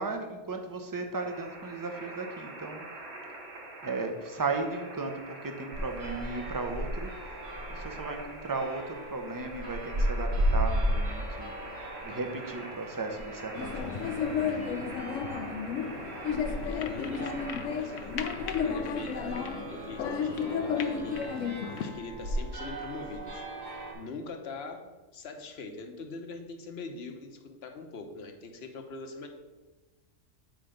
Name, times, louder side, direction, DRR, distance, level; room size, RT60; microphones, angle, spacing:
voice 1, 0.0-2.9 3.8-7.1 7.7-11.6 12.0-14.2, right 3 dB, 20° right, 5 dB, 0.5 m, -35 dB
sound 1, 1.1-18.8, right 2 dB, 60° right, 1.5 m, -45 dB
sound 2, 5.7-23.9, equal, 90° right, 2.0 m, -36 dB
sound 3, 13.6-21.9, left 6 dB, 80° left, 1.0 m, -32 dB
voice 2, 16.4-17.4 17.7-18.2 18.6-23.4 23.9-24.8 25.1-29.3, left 3 dB, 60° left, 4 dB, 1.1 m, -42 dB
7.7 x 4.4 x 5.1 m, 1.2 s
omnidirectional pair, 1.3 m